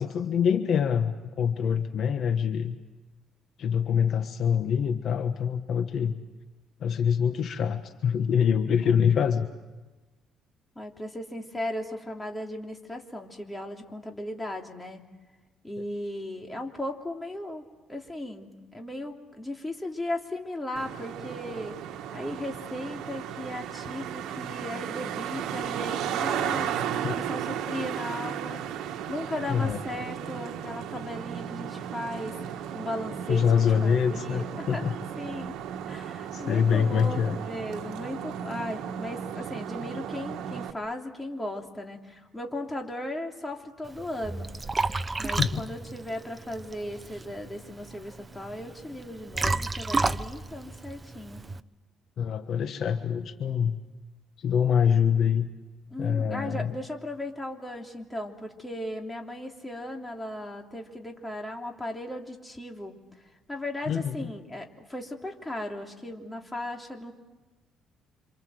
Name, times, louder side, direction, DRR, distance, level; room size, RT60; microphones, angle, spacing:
voice 1, 0.0-2.8 3.6-6.1 6.8-9.5 27.0-27.1 29.5-29.8 33.3-35.0 36.3-37.4 45.3-45.6 52.2-53.8 54.4-55.5 56.0-56.7 63.9-64.3, left 7 dB, 55° left, 7 dB, 1.3 m, -25 dB
voice 2, 10.7-15.0 15.6-17.6 17.9-21.8 22.1-34.8 35.1-35.5 35.9-44.5 45.2-51.4 55.9-63.2 63.5-67.1, left 1 dB, 10° left, 2 dB, 3.1 m, -37 dB
Traffic noise roadway noise, 20.8-40.7, right 9 dB, 80° right, 1.5 m, -35 dB
Liquid, 43.8-51.6, right 3 dB, 20° right, 0.8 m, -32 dB
27.5 x 27.0 x 7.8 m, 1.2 s
cardioid pair, 115°, 0 cm